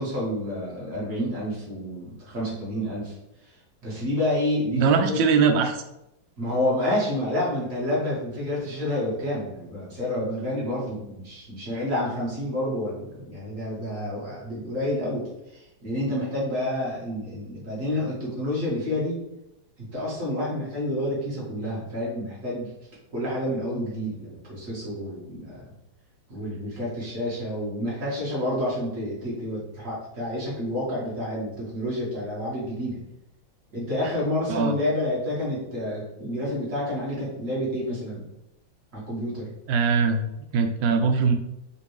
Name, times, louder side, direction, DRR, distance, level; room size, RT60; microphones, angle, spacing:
voice 1, 0.0-3.2 3.8-5.2 6.4-15.2 15.5-19.2 19.8-22.7 23.1-25.7 26.3-33.0 33.7-38.3 38.9-39.5, left 1 dB, 45° right, -7 dB, 2.0 m, -29 dB
voice 2, 4.7-5.8 34.5-34.7 39.7-40.2 40.5-41.3, right 5 dB, 80° right, 5 dB, 1.3 m, -21 dB
5.0 x 2.6 x 3.2 m, 0.88 s
omnidirectional pair, 2.0 m